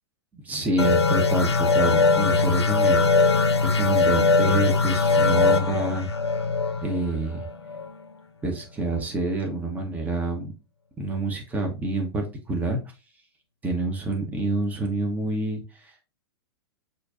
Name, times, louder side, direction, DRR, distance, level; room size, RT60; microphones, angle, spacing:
voice 1, 0.3-6.1 6.8-7.4 8.4-10.5 11.0-12.8 13.6-16.0, right 2 dB, 10° right, 2 dB, 0.9 m, -28 dB
sound 1, 0.8-8.0, left 4 dB, 85° left, 0.6 m, -21 dB
6.2 x 2.7 x 2.5 m, 0.30 s
figure-of-eight pair, 110°, 13 cm